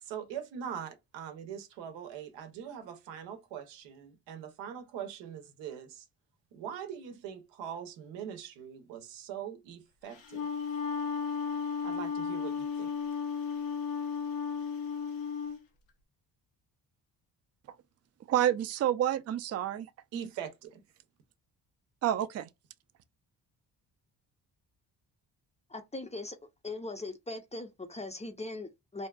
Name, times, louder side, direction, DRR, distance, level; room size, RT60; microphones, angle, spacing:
voice 1, 0.0-6.1 6.5-10.5 11.8-12.9 20.1-20.8, right 8 dB, 85° right, 0.7 m, -42 dB
Wind instrument woodwind instrument, 10.1-15.6, left 6 dB, 85° left, 0.8 m, -34 dB
voice 2, 18.3-19.9 22.0-22.5, right 11 dB, 40° right, 0.4 m, -28 dB
voice 3, 25.7-26.4 26.6-29.1, left 2 dB, 15° left, 0.5 m, -40 dB
2.6 x 2.3 x 2.2 m
supercardioid pair, 65°, 43 cm